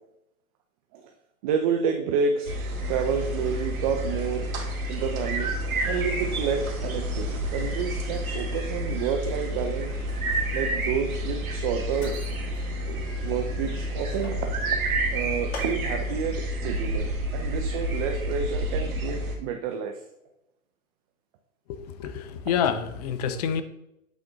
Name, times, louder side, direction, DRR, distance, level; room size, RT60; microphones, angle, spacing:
voice 1, 1.4-2.5 2.9-4.5 4.9-5.6 5.8-10.0 10.5-12.2 12.9-14.8 15.1-20.0, right 6 dB, 25° right, 4 dB, 0.5 m, -29 dB
sound 1, 2.4-19.3, right 1 dB, 70° right, 2.1 m, -29 dB
Mechanisms, 5.7-16.5, left 3 dB, 75° left, 2.0 m, -45 dB
voice 2, 21.7-23.6, left 8 dB, 30° left, 11 dB, 0.5 m, -28 dB
8.0 x 4.2 x 3.9 m, 0.84 s
hypercardioid pair, 130°, 43 cm